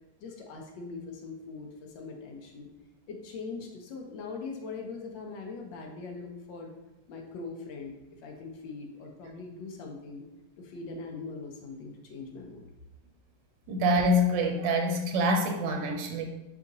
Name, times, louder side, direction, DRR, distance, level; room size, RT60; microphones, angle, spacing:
voice 1, 0.2-2.7 3.1-6.7 7.1-7.9 8.2-10.3 10.6-12.6, left 4 dB, 85° left, 1 dB, 1.4 m, -41 dB
voice 2, 13.7-16.3, equal, 85° right, 3 dB, 1.3 m, -26 dB
4.9 x 3.9 x 2.7 m, 0.95 s
omnidirectional pair, 2.0 m